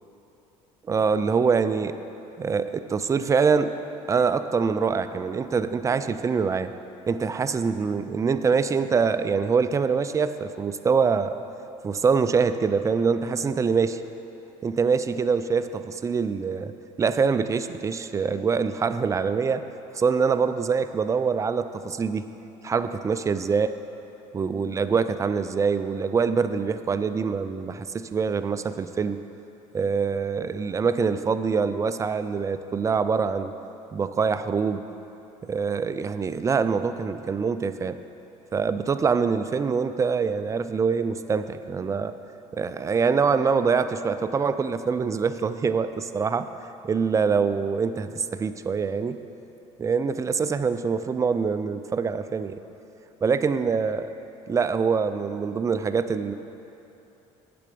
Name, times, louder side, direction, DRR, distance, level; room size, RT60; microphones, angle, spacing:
voice 1, 0.9-2.0 2.4-3.7 4.1-6.7 7.1-11.4 11.8-14.0 14.6-16.7 17.0-19.7 19.9-22.3 22.6-23.7 24.3-29.2 29.7-33.5 33.9-34.8 35.4-38.0 38.5-42.1 42.5-46.5 46.9-49.2 49.8-52.6 53.2-54.1 54.5-56.3, right 5 dB, 25° right, 11 dB, 0.4 m, -24 dB
8.6 x 6.8 x 5.2 m, 3.0 s
supercardioid pair, 95°, 14 cm